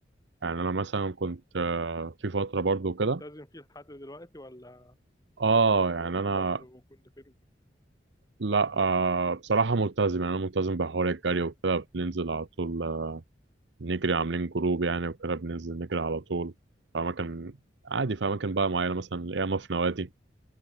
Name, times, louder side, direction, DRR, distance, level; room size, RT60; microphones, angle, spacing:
voice 1, 0.4-3.2 5.4-6.6 8.4-13.2 13.8-16.5 16.9-17.5 17.8-20.1, right 4 dB, 70° right, 0.8 m, -28 dB
voice 2, 3.0-5.0 6.0-7.4 8.7-8.8, left 1 dB, 20° left, 4.2 m, -48 dB
open air
head